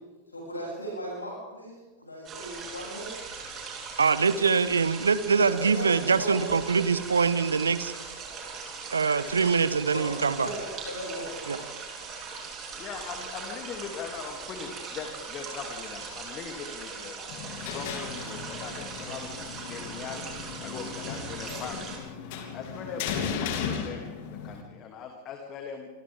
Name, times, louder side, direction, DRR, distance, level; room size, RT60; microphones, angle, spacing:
voice 1, 0.3-3.1 5.4-6.8 9.9-11.6, equal, 80° left, -3 dB, 7.9 m, -37 dB
sound 1, 2.2-22.0, right 5 dB, 30° right, 7.5 m, -40 dB
voice 2, 4.0-7.9 8.9-10.5 11.5-11.6, right 5 dB, 75° right, 15 dB, 1.1 m, -24 dB
voice 3, 12.8-17.3 17.7-20.3 20.6-22.0 22.5-25.9, left 6 dB, 35° left, 3 dB, 2.8 m, -40 dB
sound 2, 17.3-24.6, left 6 dB, 50° left, 3.1 m, -36 dB
28.5 x 25.5 x 3.7 m, 1.2 s
figure-of-eight pair, 90°, 0 cm